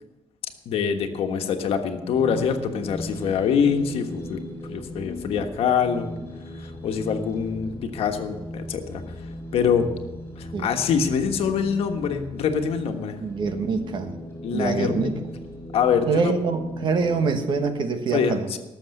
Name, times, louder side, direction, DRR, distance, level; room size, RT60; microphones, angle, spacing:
voice 1, 0.6-4.4 4.7-6.1 6.6-9.0 9.5-9.9 10.4-13.2 14.4-15.1 15.7-16.3 18.1-18.6, left 7 dB, 75° left, 5 dB, 1.4 m, -24 dB
sound 1, 2.1-17.7, left 1 dB, 20° left, 5.6 m, -37 dB
voice 2, 13.2-14.2 14.5-15.2 16.1-18.5, right 4 dB, 50° right, 7 dB, 1.3 m, -25 dB
18.0 x 7.1 x 6.7 m, 1.0 s
cardioid pair, 160°, 10 cm